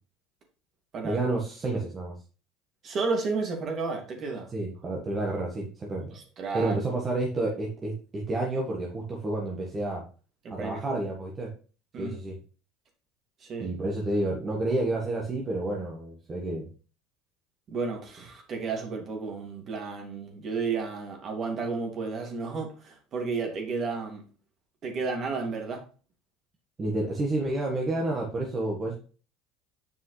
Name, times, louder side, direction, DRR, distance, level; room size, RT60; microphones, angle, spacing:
voice 1, 1.0-2.1 4.5-6.1 6.5-10.1 10.5-11.5 12.0-12.4 13.6-16.7 26.8-28.9, right 2 dB, 30° right, -1 dB, 1.6 m, -30 dB
voice 2, 2.8-4.5 6.1-6.8 10.4-10.8 11.9-12.2 13.4-13.7 17.7-24.2 24.8-25.8, right 4 dB, 45° right, 2 dB, 2.5 m, -32 dB
7.8 x 5.5 x 3.3 m, 0.37 s
supercardioid pair, 95°, 0 cm